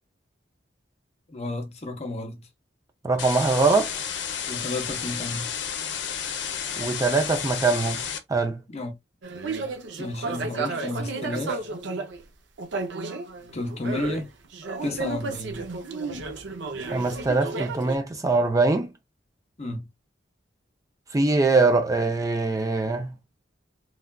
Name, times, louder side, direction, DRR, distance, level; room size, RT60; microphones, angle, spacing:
voice 1, 1.3-2.5 4.5-5.5 8.7-8.9 10.0-11.6 13.5-14.3 14.8-15.7 19.6-19.9, left 2 dB, 40° left, 0.7 m, -32 dB
voice 2, 3.0-3.9 6.8-8.0 8.3-8.6 16.9-18.9 21.1-23.1, right 3 dB, 20° right, 0.4 m, -22 dB
sound 1, 3.2-8.2, left 8 dB, 80° left, 0.6 m, -31 dB
sound 2, 9.2-12.2 12.6-14.3 14.5-18.0, right 3 dB, 80° right, 0.6 m, -32 dB
3.2 x 2.3 x 2.2 m
head